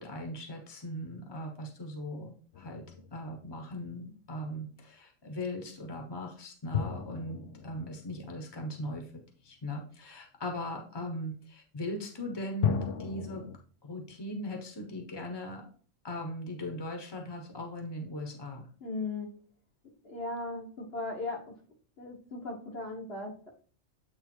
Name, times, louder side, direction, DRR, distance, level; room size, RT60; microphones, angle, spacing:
voice 1, 0.0-2.8 3.1-13.4 13.8-15.6 16.0-18.6, left 1 dB, 20° left, 3 dB, 1.2 m, -39 dB
sound 1, 2.5-3.9 6.7-9.3 12.6-13.6, left 8 dB, 70° left, 1.1 m, -36 dB
voice 2, 18.8-19.3 20.0-21.5 22.0-23.5, left 2 dB, 55° left, 0 dB, 1.6 m, -37 dB
8.4 x 3.4 x 4.5 m, 0.42 s
omnidirectional pair, 1.3 m